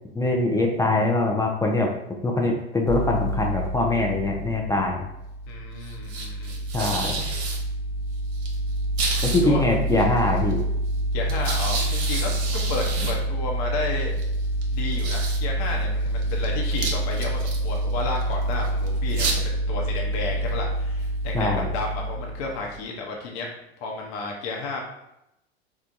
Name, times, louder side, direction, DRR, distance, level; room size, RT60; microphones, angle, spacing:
voice 1, 0.1-1.9 2.2-5.1 6.7-7.1 9.2-10.6 21.3-21.7, left 2 dB, 10° left, 0 dB, 0.5 m, -23 dB
sound 1, 2.9-22.8, right 1 dB, 55° right, 0.9 m, -27 dB
voice 2, 5.5-7.2 9.4-9.6 11.1-14.1 14.7-23.5 23.8-24.8, left 3 dB, 50° left, 0 dB, 0.9 m, -32 dB
4.4 x 2.3 x 2.6 m, 0.85 s
hypercardioid pair, 80°, 32 cm